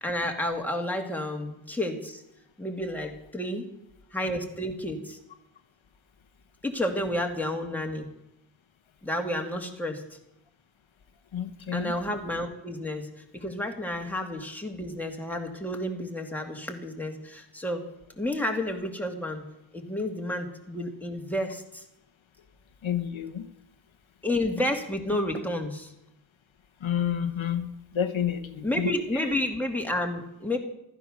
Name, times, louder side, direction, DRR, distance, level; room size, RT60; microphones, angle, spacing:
voice 1, 0.0-2.2 2.6-3.7 4.1-5.2 6.6-8.1 9.0-10.0 11.7-17.9 18.2-19.5 19.7-21.8 24.2-25.9 28.6-30.6, left 1 dB, 5° left, 2 dB, 2.3 m, -31 dB
voice 2, 11.3-12.0 22.8-23.5 26.8-29.3, left 9 dB, 80° left, 8 dB, 1.2 m, -30 dB
15.0 x 13.5 x 6.6 m, 0.85 s
wide cardioid pair, 125°, 47 cm